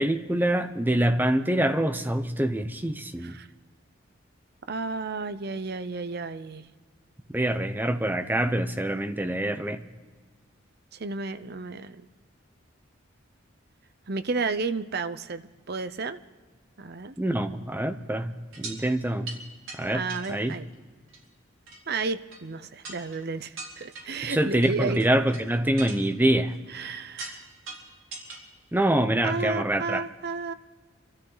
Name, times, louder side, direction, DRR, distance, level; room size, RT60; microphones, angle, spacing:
voice 1, 0.0-3.4 7.3-9.8 17.2-18.3 18.6-19.3 19.8-20.5 24.2-26.5 28.7-30.0, right 1 dB, 10° right, 7 dB, 0.8 m, -25 dB
voice 2, 4.7-6.6 11.0-12.0 14.1-16.2 16.8-17.1 19.9-20.7 21.9-25.0 26.7-27.4 29.2-30.5, right 4 dB, 50° right, 11 dB, 0.7 m, -32 dB
sound 1, 18.5-18.8 19.3-19.4 19.7-19.8 20.1-20.8 21.1-21.2 21.7-21.8 22.3-22.4 22.8-23.2 23.6-24.2 24.6-25.4 25.8-26.8 27.2-27.4 27.7-28.4 28.8-28.9, right 3 dB, 75° right, 3.6 m, -40 dB
26.0 x 13.0 x 4.0 m, 1.4 s
head